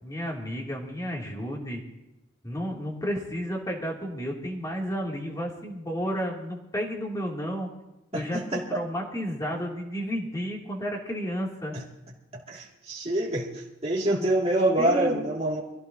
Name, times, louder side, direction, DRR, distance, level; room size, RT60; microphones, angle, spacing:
voice 1, 0.0-1.8 2.4-7.7 8.1-11.8 14.1-14.2 14.8-15.2, equal, 20° left, -2 dB, 2.9 m, -32 dB
voice 2, 8.1-8.4 11.7-11.8 12.5-15.6, right 1 dB, 35° right, -5 dB, 2.6 m, -26 dB
23.5 x 15.5 x 2.9 m, 0.96 s
head